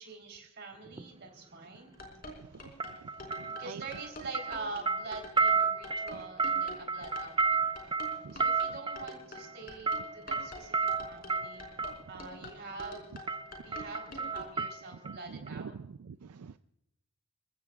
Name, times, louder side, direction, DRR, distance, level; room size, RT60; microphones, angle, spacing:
voice 1, 0.0-1.9 3.6-7.9 8.3-11.6 12.1-15.7, right 3 dB, 50° right, 3 dB, 3.8 m, -45 dB
sound 1, 0.9-1.1 2.8-4.1 4.3-12.0 12.8-13.0 13.3-15.2 15.5-15.6, right 4 dB, 20° right, 0.5 m, -32 dB
sound 2, 1.8-14.5, left 1 dB, 40° left, 4.4 m, -46 dB
voice 2, 2.4-3.8 8.2-8.4 15.0-16.6, right 6 dB, 80° right, 11 dB, 0.4 m, -46 dB
29.5 x 15.0 x 2.4 m, 0.81 s
head